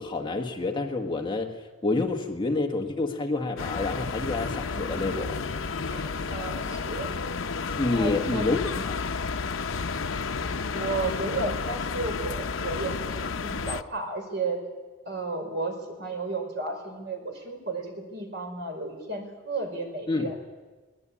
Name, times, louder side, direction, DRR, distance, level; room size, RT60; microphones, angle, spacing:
voice 1, 0.0-1.5 1.8-5.4 7.8-9.0 20.1-20.3, left 3 dB, 25° left, 3 dB, 1.5 m, -28 dB
sound 1, 3.6-13.8, left 4 dB, 75° left, 0.8 m, -31 dB
voice 2, 4.7-5.4 5.9-7.1 7.9-8.5 10.7-14.6 15.1-20.4, right 3 dB, 55° right, 3 dB, 5.2 m, -33 dB
22.5 x 19.5 x 8.7 m, 1.3 s
head